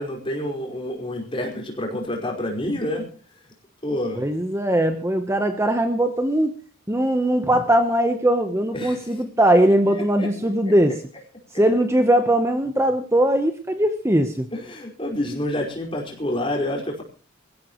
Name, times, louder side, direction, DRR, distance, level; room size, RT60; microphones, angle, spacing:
voice 1, 0.0-3.1 3.8-4.3 8.7-9.5 9.9-10.7 14.5-17.0, left 1 dB, 25° left, -1 dB, 4.9 m, -28 dB
voice 2, 4.2-6.5 6.9-11.0 11.5-14.5, right 1 dB, 15° right, 6 dB, 1.0 m, -20 dB
24.5 x 15.5 x 3.1 m, 0.38 s
head